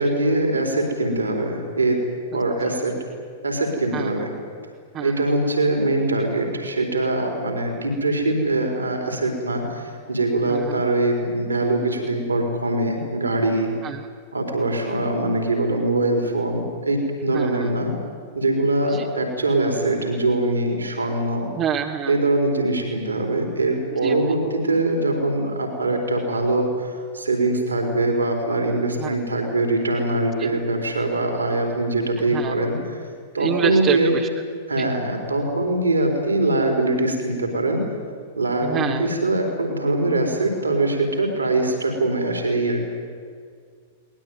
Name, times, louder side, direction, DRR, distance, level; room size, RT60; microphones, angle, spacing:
voice 1, 0.0-2.0 2.3-2.9 3.4-4.3 5.0-13.7 14.3-17.9 18.3-21.5 22.1-33.0 33.3-34.1 34.7-37.8 38.4-42.8, right 2 dB, 80° right, 3 dB, 4.1 m, -22 dB
voice 2, 3.9-4.2 4.9-5.2 10.5-10.8 13.8-14.1 17.3-17.7 18.8-19.1 21.6-22.2 24.0-24.2 29.0-29.2 30.4-30.5 32.3-32.6 33.4-34.3 34.8-34.9 38.6-39.1, right 8 dB, 30° right, 2 dB, 1.4 m, -27 dB
22.0 x 20.0 x 9.4 m, 2.1 s
figure-of-eight pair, 100°, 0 cm